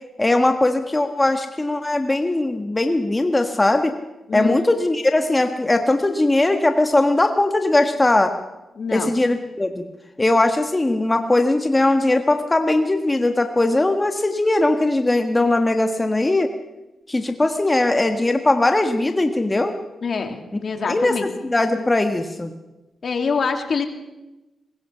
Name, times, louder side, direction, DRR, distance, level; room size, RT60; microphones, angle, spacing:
voice 1, 0.2-3.9 4.3-8.3 8.9-9.9 10.2-16.5 17.1-19.7 20.8-22.5, left 2 dB, 20° left, 6 dB, 1.4 m, -19 dB
voice 2, 4.3-4.6 8.8-9.1 20.0-21.3 23.0-23.9, left 5 dB, 60° left, 5 dB, 2.7 m, -25 dB
22.0 x 20.5 x 5.7 m, 1.0 s
cardioid pair, 75°, 0 cm